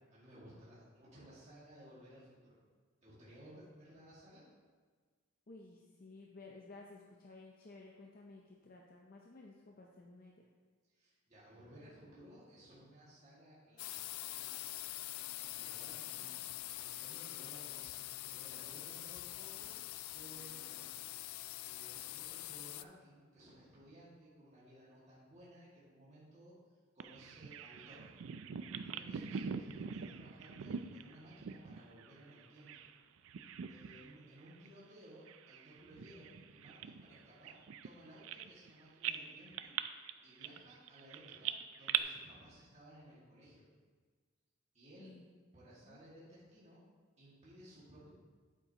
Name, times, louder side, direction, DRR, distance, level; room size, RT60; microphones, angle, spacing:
voice 1, 0.1-2.6 3.0-4.5 10.9-14.7 15.1-16.4 16.7-19.7 20.0-20.8 21.4-26.5 26.9-28.1 28.8-32.7 33.7-37.6 37.8-39.7 40.2-43.6 44.7-45.1 45.5-46.8 47.2-48.1, equal, 30° right, -8 dB, 2.0 m, -58 dB
voice 2, 5.5-10.5 16.2-16.5 29.2-29.4 45.0-45.3 45.9-46.0, left 3 dB, 40° left, 0 dB, 0.6 m, -55 dB
sound 1, 13.8-22.8, left 15 dB, 85° left, 0.3 m, -45 dB
Bird vocalization bird call bird song, 27.0-33.0 33.2-34.1 34.5-34.7 35.3-38.7 39.0-42.0, right 8 dB, 70° right, 0.4 m, -43 dB
8.3 x 8.3 x 2.9 m, 1.5 s
head